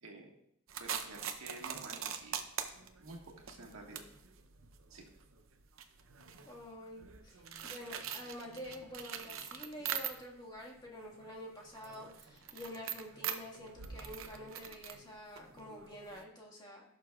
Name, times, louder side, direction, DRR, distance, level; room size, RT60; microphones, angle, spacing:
voice 1, 0.0-0.3 0.8-2.4 3.0-4.0 4.9-5.0, right 2 dB, 90° right, 1 dB, 1.7 m, -50 dB
sound 1, 0.7-10.5 10.8-16.2, right 8 dB, 70° right, 0.7 m, -44 dB
voice 2, 6.5-16.8, left 1 dB, 20° left, -2 dB, 1.8 m, -48 dB
16.0 x 6.6 x 2.4 m, 0.74 s
head